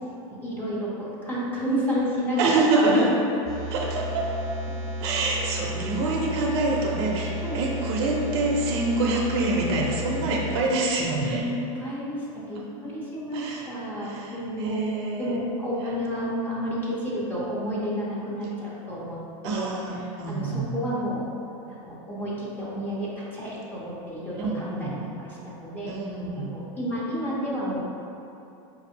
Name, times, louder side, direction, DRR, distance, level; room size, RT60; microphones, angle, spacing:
voice 1, 0.3-2.5 2.7-3.1 5.3-5.4 7.4-7.6 11.2-14.8 15.2-19.6 20.3-21.2 21.7-25.9 26.4-27.8, equal, 10° left, -7 dB, 0.6 m, -30 dB
voice 2, 2.4-3.1 3.7-4.3 5.0-11.5 12.6-12.7 13.3-15.4 19.4-20.7 24.4-25.0 25.9-26.6, right 2 dB, 50° right, -1 dB, 0.5 m, -26 dB
sound 1, 3.4-10.6, equal, 35° left, 1.4 m, -33 dB
4.9 x 2.6 x 2.7 m, 2.8 s
supercardioid pair, 160°, 17 cm